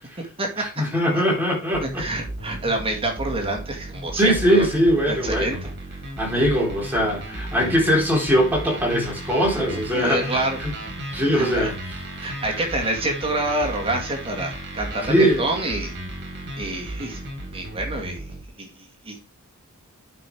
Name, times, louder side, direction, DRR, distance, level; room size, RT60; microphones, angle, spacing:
voice 1, 0.6-2.1 4.2-5.6 6.2-10.7 11.1-11.8 12.2-12.3 15.1-15.4, equal, 10° right, 3.9 m, -21 dB
sound 1, 1.7-18.5, right 1 dB, 55° right, 2.9 m, -34 dB
voice 2, 1.8-4.7 5.1-5.6 9.7-10.6 11.3-11.7 12.2-15.9 16.6-17.2 17.5-18.2 18.6-19.2, right 2 dB, 25° right, 2.1 m, -27 dB
9.1 x 6.2 x 4.9 m
head